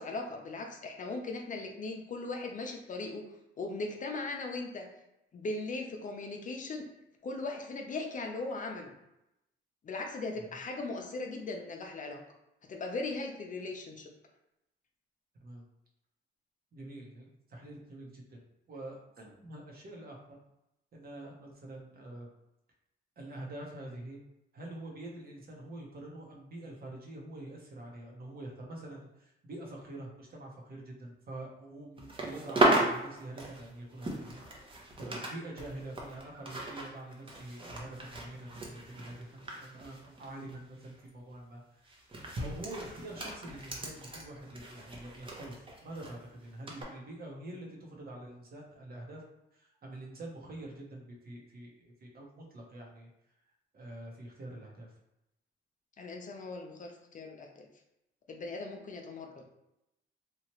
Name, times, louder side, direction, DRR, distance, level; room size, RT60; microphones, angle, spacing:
voice 1, 0.0-3.2 3.6-4.9 5.3-6.8 7.2-8.9 9.8-12.2 12.7-14.1 56.0-57.7 58.3-59.3, left 3 dB, 40° left, 2 dB, 0.5 m, -38 dB
voice 2, 16.7-18.4 18.7-20.2 20.9-22.3 23.2-24.2 24.5-41.9 42.4-49.2 49.5-53.1 53.7-54.9, right 1 dB, 50° right, -1 dB, 0.9 m, -46 dB
sound 1, 32.0-35.3 35.6-40.5 40.8-41.1 41.9-46.1 46.7-46.8, right 2 dB, 25° right, 0.7 m, -35 dB
3.0 x 2.3 x 3.0 m, 0.88 s
cardioid pair, 90°, 20 cm